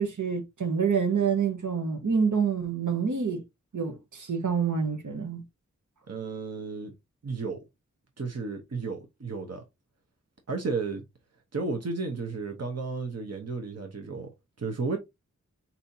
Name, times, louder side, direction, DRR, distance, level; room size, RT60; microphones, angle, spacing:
voice 1, 0.0-3.4 3.7-5.4, right 6 dB, 90° right, 1.2 m, -27 dB
voice 2, 6.1-6.9 7.2-7.6 8.2-9.6 10.5-11.1 11.5-14.3 14.6-15.0, right 4 dB, 55° right, 0.9 m, -33 dB
4.2 x 4.2 x 2.7 m
wide cardioid pair, 70°, 30 cm